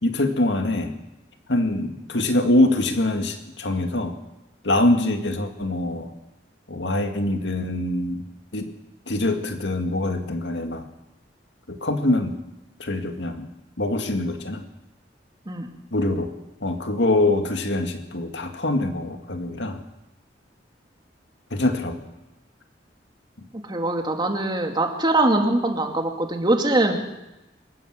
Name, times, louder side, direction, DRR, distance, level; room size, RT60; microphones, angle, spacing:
voice 1, 0.0-0.9 1.5-4.1 4.6-6.1 6.7-8.2 8.5-8.7 9.1-10.9 11.7-12.3 12.8-13.5 13.8-14.6 15.9-16.3 16.6-19.8 21.5-22.1, left 1 dB, 85° left, 6 dB, 2.1 m, -24 dB
voice 2, 23.6-27.0, right 2 dB, 25° right, 3 dB, 2.5 m, -22 dB
24.0 x 14.0 x 7.6 m, 0.97 s
head